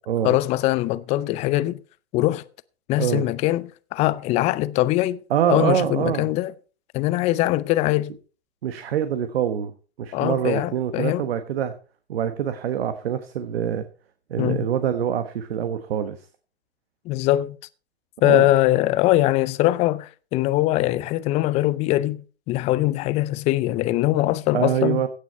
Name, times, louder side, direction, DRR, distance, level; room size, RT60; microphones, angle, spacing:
voice 1, 0.2-1.8 2.1-2.4 2.9-5.2 5.5-6.5 6.9-8.1 10.1-11.3 14.4-14.7 17.1-17.6 18.2-22.2 22.5-25.0, left 16 dB, 20° left, 0.5 m, -22 dB
voice 2, 5.3-6.3 8.6-9.7 10.0-11.8 12.1-13.8 14.3-16.2 18.2-18.5 24.5-25.1, right 9 dB, 65° right, 1.2 m, -24 dB
16.0 x 6.7 x 4.3 m
hypercardioid pair, 120°, 32 cm